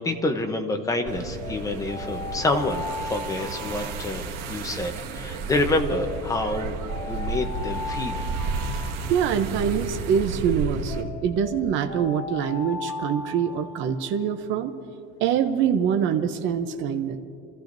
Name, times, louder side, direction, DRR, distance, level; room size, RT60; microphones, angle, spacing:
voice 1, 0.0-6.8 7.1-8.2, left 2 dB, 10° left, 5 dB, 0.8 m, -27 dB
sound 1, 1.1-11.0, right 4 dB, 75° right, 1.7 m, -32 dB
Alarm, 1.4-4.7 5.9-9.7 10.9-14.1, left 4 dB, 35° left, 1.6 m, -37 dB
voice 2, 9.1-14.7 15.2-17.2, right 8 dB, 40° right, 5 dB, 0.7 m, -24 dB
27.5 x 15.0 x 2.6 m, 2.5 s
cardioid pair, 170°, 29 cm